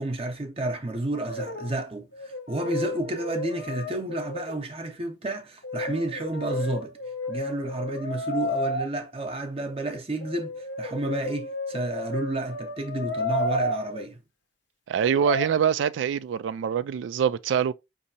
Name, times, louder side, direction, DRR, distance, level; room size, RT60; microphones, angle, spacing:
voice 1, 0.0-7.0 7.3-14.2, right 2 dB, 35° right, 0.7 m, -31 dB
Brass instrument, 1.1-1.8 2.1-4.6 5.6-8.8 10.2-14.0 15.0-15.5, left 2 dB, 75° left, 1.0 m, -32 dB
voice 2, 14.9-17.7, right 8 dB, 90° right, 0.3 m, -24 dB
5.0 x 2.7 x 2.7 m
head